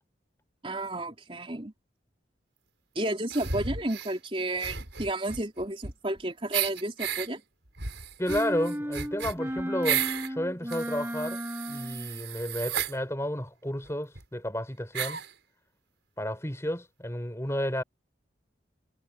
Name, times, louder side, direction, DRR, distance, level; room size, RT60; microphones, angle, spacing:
voice 1, 0.6-1.7 3.0-7.4, right 1 dB, 30° right, 3.6 m, -32 dB
sound 1, 3.3-4.1 4.6-6.2 6.5-7.3 7.8-10.3 10.7-13.0 13.9-14.0 14.2-14.3 14.9-15.3, right 8 dB, 75° right, 4.6 m, -33 dB
voice 2, 8.2-11.4 11.7-15.2 16.2-17.8, equal, 15° left, 5.1 m, -32 dB
sound 2, 8.3-12.2, equal, 10° right, 7.3 m, -34 dB
head